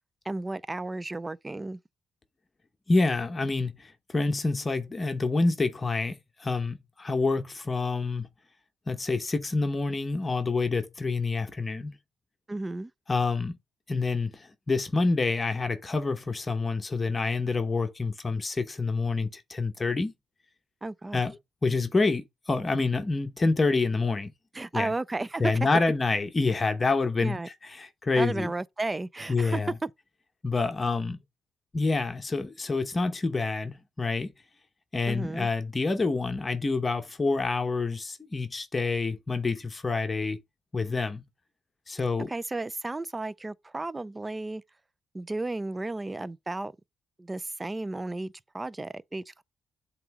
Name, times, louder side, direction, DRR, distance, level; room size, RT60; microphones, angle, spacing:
voice 1, 0.3-1.8 12.5-12.9 20.8-21.2 24.5-25.4 27.2-27.5 28.2-29.9 35.1-35.5 42.3-44.6 45.1-46.7 47.2-49.4, right 2 dB, 20° right, 0.4 m, -33 dB
voice 2, 2.9-8.3 8.9-12.0 13.1-13.5 13.9-20.1 21.1-24.3 24.7-24.9 25.4-28.5 29.3-29.7 30.4-31.2 31.7-34.3 34.9-40.4 40.7-41.2 41.9-42.3, left 3 dB, 25° left, 0.9 m, -27 dB
7.5 x 3.0 x 4.7 m
cardioid pair, 90°, 0 cm